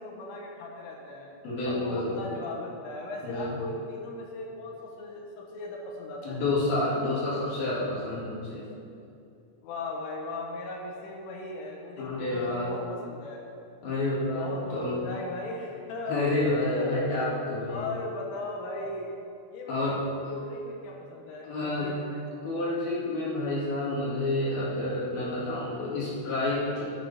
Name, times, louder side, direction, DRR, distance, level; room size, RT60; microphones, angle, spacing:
voice 1, 0.0-1.4 1.7-6.5 9.6-13.4 14.3-17.0 17.7-19.1 19.5-22.2, left 2 dB, 75° left, -1 dB, 3.7 m, -38 dB
voice 2, 1.4-2.2 3.2-3.6 6.2-8.6 12.0-12.7 13.8-15.0 16.1-17.9 19.7-20.0 21.4-21.9 22.4-26.8, left 2 dB, 55° left, -7 dB, 3.3 m, -29 dB
12.0 x 9.2 x 4.1 m, 2.5 s
omnidirectional pair, 6.0 m